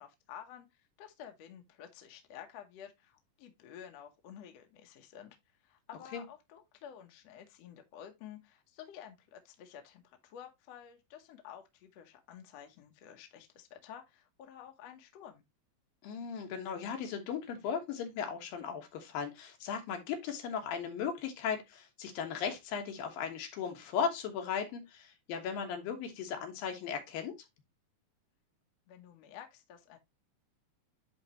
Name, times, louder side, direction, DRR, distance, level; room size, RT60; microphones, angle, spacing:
voice 1, 0.0-5.4 5.6-15.4 28.9-30.0, left 9 dB, 65° left, 1.8 m, -51 dB
voice 2, 16.0-27.4, left 7 dB, 80° left, 3.1 m, -37 dB
10.5 x 4.0 x 3.0 m
omnidirectional pair, 4.1 m